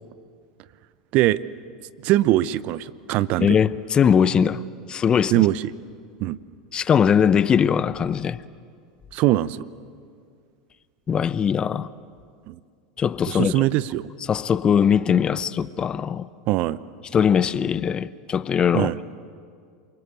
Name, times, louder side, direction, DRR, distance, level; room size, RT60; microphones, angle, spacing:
voice 1, 2.0-3.6 5.3-5.7 6.2-6.4 9.1-9.6 12.5-12.6 13.3-14.1 16.5-16.8 18.7-19.0, right 15 dB, 55° right, 0.7 m, -21 dB
voice 2, 3.4-4.6 4.9-5.4 6.7-8.4 11.1-11.9 13.0-13.6 14.3-16.3 17.1-19.0, left 7 dB, 30° left, 0.7 m, -20 dB
27.5 x 24.0 x 8.3 m
hypercardioid pair, 95°, 3 cm